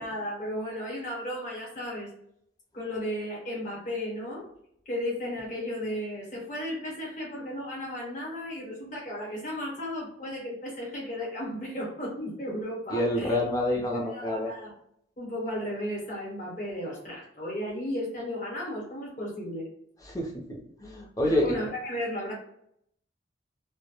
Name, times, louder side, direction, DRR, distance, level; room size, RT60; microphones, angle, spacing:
voice 1, 0.0-2.1 2.7-4.5 4.9-13.4 13.9-14.7 15.2-19.7 21.2-22.3, left 1 dB, 40° left, -4 dB, 0.9 m, -34 dB
voice 2, 12.9-14.5 20.1-21.6, left 1 dB, 20° left, -1 dB, 0.5 m, -28 dB
2.2 x 2.0 x 2.9 m, 0.72 s
head